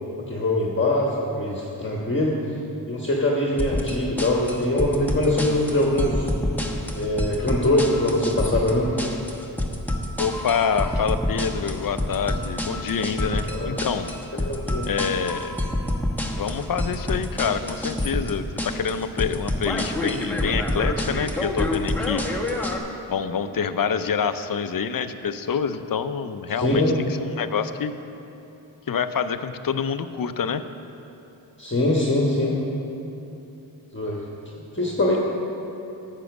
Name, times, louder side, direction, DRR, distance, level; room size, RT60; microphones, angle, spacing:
voice 1, 0.3-2.4 2.9-6.3 6.9-8.9 13.5-13.8 14.4-14.9 26.6-27.0 31.6-32.6 33.9-34.2 34.7-35.2, left 1 dB, 25° left, -3 dB, 1.4 m, -23 dB
sound 1, 3.6-22.8, left 1 dB, 5° left, 1.2 m, -27 dB
voice 2, 10.2-14.1 14.9-15.5 16.3-22.2 23.1-27.9 28.9-30.6, left 6 dB, 50° left, 11 dB, 0.6 m, -27 dB
10.0 x 7.6 x 6.1 m, 2.9 s
cardioid pair, 45°, 44 cm